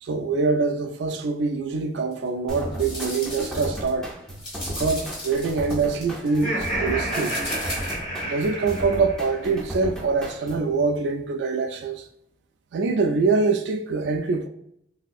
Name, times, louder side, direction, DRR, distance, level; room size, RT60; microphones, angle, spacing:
voice 1, 0.0-4.2 4.7-7.4 8.2-12.0 12.7-14.5, right 4 dB, 70° right, 0.3 m, -24 dB
sound 1, 2.1-2.2 2.7-3.9 4.3-6.4 7.0-7.9, left 1 dB, 30° left, 0.9 m, -36 dB
sound 2, 2.5-10.7, equal, ahead, 0.4 m, -35 dB
Laughter, 6.3-9.5, right 1 dB, 45° left, 1.1 m, -30 dB
3.3 x 2.6 x 2.3 m
head